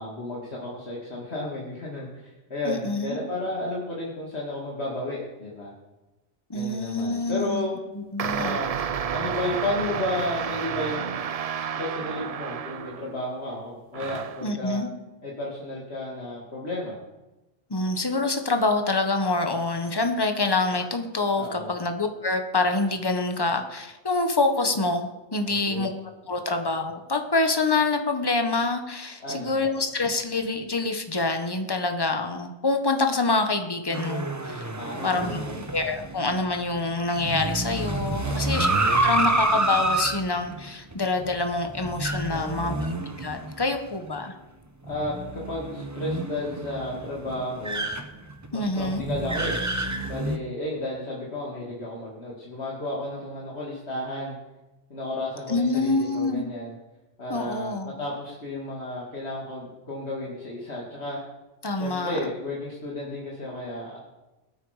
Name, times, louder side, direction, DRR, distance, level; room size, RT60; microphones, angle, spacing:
voice 1, 0.0-5.7 6.5-7.8 8.3-8.7 9.1-11.2 11.5-14.8 15.2-17.0 21.4-21.7 25.4-26.0 29.2-29.6 34.7-35.6 38.2-38.6 42.3-42.8 44.8-47.9 48.5-49.6 50.1-54.4 54.9-56.7 57.2-61.2 61.7-64.0, left 1 dB, 65° left, -4 dB, 2.5 m, -33 dB
voice 2, 2.6-3.2 6.5-7.7 7.9-8.6 14.4-14.9 17.7-25.9 26.3-34.7 35.0-35.4 35.7-38.7 39.0-44.3 48.5-49.0 55.5-56.5 57.3-57.9 61.6-62.2, left 3 dB, 20° left, 5 dB, 1.3 m, -26 dB
sound 1, 8.2-13.2 13.9-14.5, right 7 dB, 50° right, 0.4 m, -31 dB
sound 2, 33.9-43.8 44.2-44.3 44.9-50.4, right 2 dB, 15° right, 0.9 m, -29 dB
21.5 x 8.9 x 5.0 m, 1.1 s
omnidirectional pair, 1.2 m